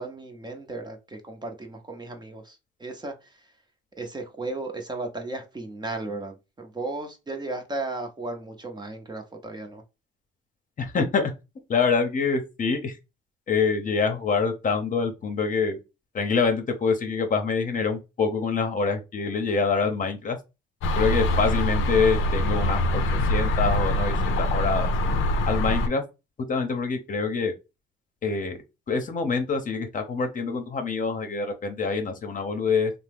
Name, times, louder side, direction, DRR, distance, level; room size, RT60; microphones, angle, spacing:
voice 1, 0.0-3.5 4.0-9.8, right 2 dB, 20° right, 0.6 m, -35 dB
voice 2, 10.8-11.3 11.7-13.0 13.5-15.8 16.1-20.4 20.9-24.9 25.5-26.0 26.5-27.5 28.2-28.6 28.9-32.9, left 5 dB, 40° left, 0.7 m, -25 dB
sound 1, 20.8-25.9, left 1 dB, 80° left, 0.5 m, -24 dB
2.8 x 2.0 x 3.3 m
cardioid pair, 90°, 20 cm